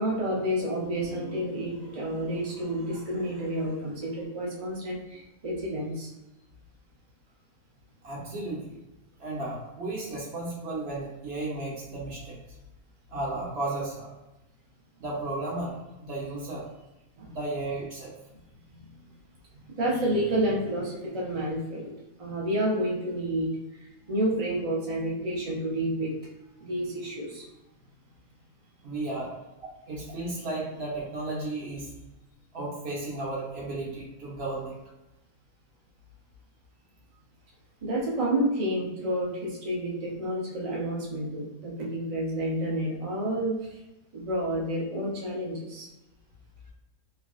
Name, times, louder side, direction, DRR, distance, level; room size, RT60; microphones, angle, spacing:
voice 1, 0.0-6.1 17.2-17.3 19.6-21.9 22.2-23.5 24.1-26.1 26.6-27.4 37.8-43.8 44.1-45.9, right 1 dB, 70° right, -4 dB, 0.3 m, -29 dB
voice 2, 8.0-8.8 9.2-12.4 13.1-14.1 15.0-16.6 17.3-18.1 28.8-29.3 29.9-31.9 32.5-34.7, right 2 dB, 50° right, -4 dB, 1.0 m, -34 dB
3.5 x 2.4 x 2.3 m, 0.97 s
omnidirectional pair, 1.7 m